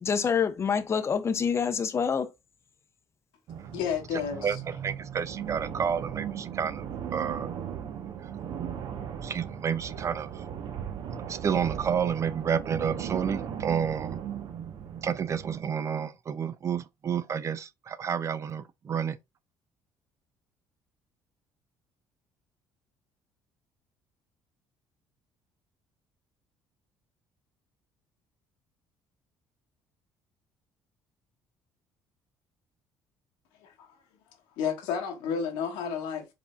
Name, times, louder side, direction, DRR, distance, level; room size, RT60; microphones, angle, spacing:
voice 1, 0.0-2.3, left 6 dB, 35° left, 0.7 m, -26 dB
sound 1, 3.5-15.6, right 8 dB, 60° right, 0.7 m, -37 dB
voice 2, 3.7-4.6 33.6-34.0 34.5-36.3, left 7 dB, 90° left, 1.3 m, -31 dB
voice 3, 4.4-6.8 7.1-7.5 9.2-10.4 11.3-14.2 15.0-19.2, right 7 dB, 40° right, 0.4 m, -30 dB
4.8 x 3.6 x 2.2 m
cardioid pair, 90°, 8 cm